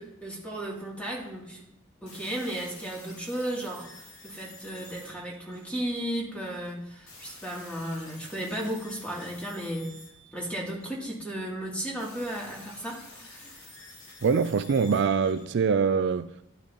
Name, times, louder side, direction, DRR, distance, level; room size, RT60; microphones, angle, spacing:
voice 1, 0.0-1.6 2.0-9.9 10.3-13.7, right 1 dB, 5° left, 2.7 m, -35 dB
sound 1, 2.1-6.2 7.1-11.1 12.0-15.5, left 2 dB, 80° left, 3.8 m, -50 dB
voice 2, 14.2-16.3, right 5 dB, 60° right, 0.4 m, -24 dB
12.0 x 11.5 x 2.9 m
head